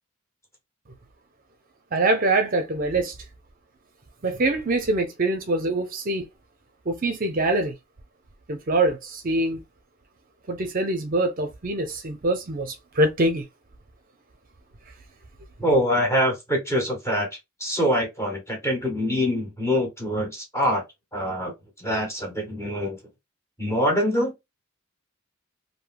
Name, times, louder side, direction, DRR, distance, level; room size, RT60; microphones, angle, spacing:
voice 1, 1.9-3.1 4.2-6.3 6.9-7.7 8.5-9.6 10.5-13.4, right 2 dB, 40° right, 0.6 m, -24 dB
voice 2, 15.6-17.3 17.6-20.8 21.1-21.5 21.8-23.0 23.6-24.3, equal, 15° left, 1.3 m, -24 dB
3.2 x 2.7 x 2.2 m
head